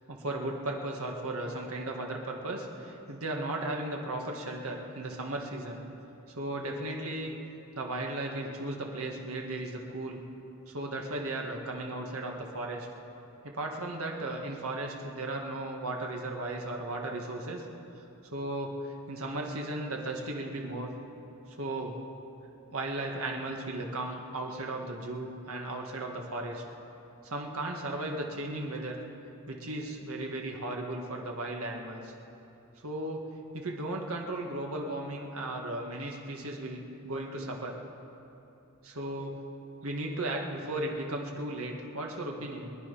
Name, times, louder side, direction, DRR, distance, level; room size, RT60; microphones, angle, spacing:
voice 1, 0.1-5.8 6.3-7.4 7.8-10.2 10.7-12.9 13.4-17.6 18.3-20.9 21.6-21.9 22.7-26.6 27.2-29.0 29.5-32.1 32.8-33.2 33.5-37.7 38.8-39.4 39.8-42.8, right 2 dB, 90° right, 0 dB, 1.8 m, -36 dB
23.0 x 10.5 x 5.6 m, 2.9 s
head